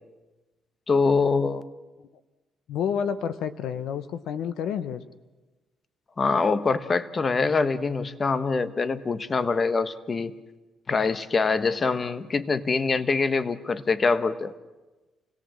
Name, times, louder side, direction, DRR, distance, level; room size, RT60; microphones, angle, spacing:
voice 1, 0.9-1.6 6.2-10.3 10.9-14.5, left 4 dB, 35° left, 13 dB, 1.2 m, -24 dB
voice 2, 2.7-5.0, left 8 dB, 80° left, 12 dB, 1.0 m, -29 dB
28.0 x 17.5 x 7.6 m, 1.2 s
cardioid pair, 90°, 0 cm